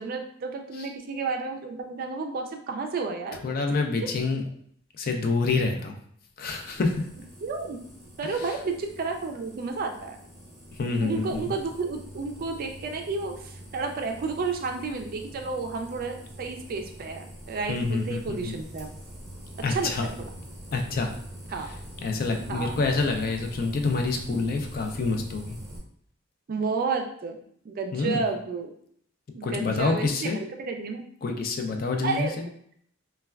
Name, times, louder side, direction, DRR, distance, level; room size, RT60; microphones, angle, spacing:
voice 1, 0.0-3.6 7.4-7.8 8.2-10.2 11.0-18.9 19.7-20.3 21.5-21.7 22.5-22.7 26.5-27.4 27.7-28.7 29.3-31.0 32.0-32.4, right 4 dB, 45° right, 5 dB, 0.3 m, -31 dB
voice 2, 3.4-4.4 5.0-6.0 6.4-6.9 10.8-11.6 17.7-18.5 19.6-20.1 20.7-21.1 22.0-25.6 27.9-28.2 29.4-30.4 31.2-32.3, left 3 dB, 45° left, 3 dB, 0.4 m, -27 dB
sound 1, 6.5-25.8, equal, ahead, 0.8 m, -44 dB
3.2 x 2.2 x 2.3 m, 0.64 s
head